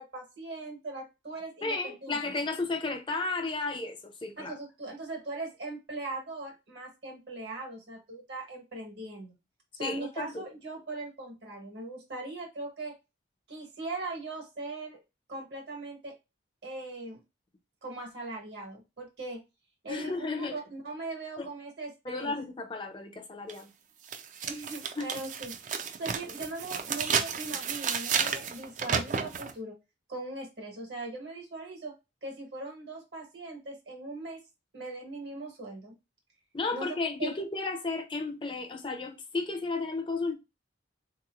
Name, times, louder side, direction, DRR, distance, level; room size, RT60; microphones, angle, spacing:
voice 1, 0.0-2.3 4.4-9.3 9.7-12.9 13.5-15.0 15.3-16.1 16.6-17.2 17.8-19.4 19.8-22.3 24.4-29.8 30.1-31.9 32.2-34.4 34.7-35.9 36.7-36.9 37.2-37.3, right 2 dB, 65° right, 1.4 m, -40 dB
voice 2, 1.6-4.5 9.8-10.4 19.9-20.6 21.4-21.5 22.0-23.7 25.0-25.1 36.5-40.3, left 3 dB, 25° left, 0.5 m, -33 dB
sound 1, 23.5-23.6 24.1-29.5, right 6 dB, 40° right, 0.4 m, -32 dB
3.6 x 2.9 x 2.4 m
head